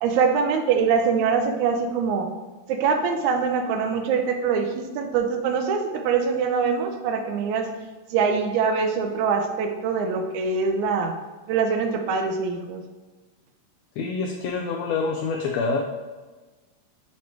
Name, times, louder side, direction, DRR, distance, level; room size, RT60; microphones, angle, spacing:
voice 1, 0.0-2.3 2.7-7.7 8.1-11.1 11.5-12.8, right 5 dB, 80° right, 5 dB, 2.0 m, -23 dB
voice 2, 14.0-15.8, left 4 dB, 80° left, 1 dB, 1.6 m, -26 dB
7.1 x 3.2 x 4.6 m, 1.3 s
omnidirectional pair, 3.4 m